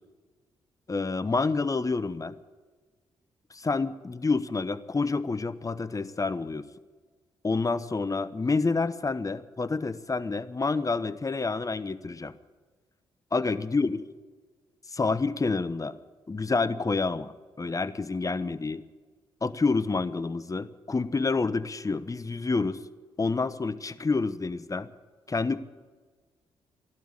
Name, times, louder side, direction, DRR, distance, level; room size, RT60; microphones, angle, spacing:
voice 1, 0.9-2.3 3.5-6.7 7.4-12.3 13.3-14.0 14.9-16.0 16.3-17.3 17.6-18.8 19.4-22.8 23.2-24.9 25.3-25.6, left 3 dB, 30° left, 14 dB, 1.0 m, -28 dB
14.0 x 11.5 x 8.9 m, 1.4 s
hypercardioid pair, 45°, 12 cm